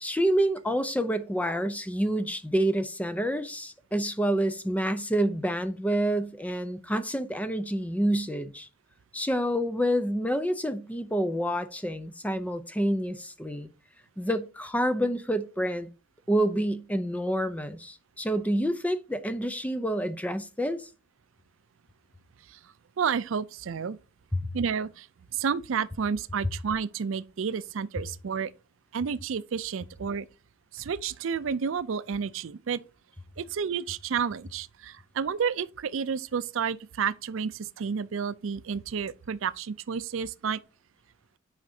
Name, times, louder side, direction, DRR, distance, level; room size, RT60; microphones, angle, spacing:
voice 1, 0.0-8.7 9.1-13.7 14.2-15.9 16.3-20.9 24.3-24.5, equal, 5° left, 0.6 m, -28 dB
voice 2, 23.0-24.0 24.5-25.1 25.3-28.5 28.9-30.3 30.7-32.8 33.4-40.6, right 6 dB, 75° right, 0.4 m, -30 dB
9.5 x 4.9 x 2.7 m
head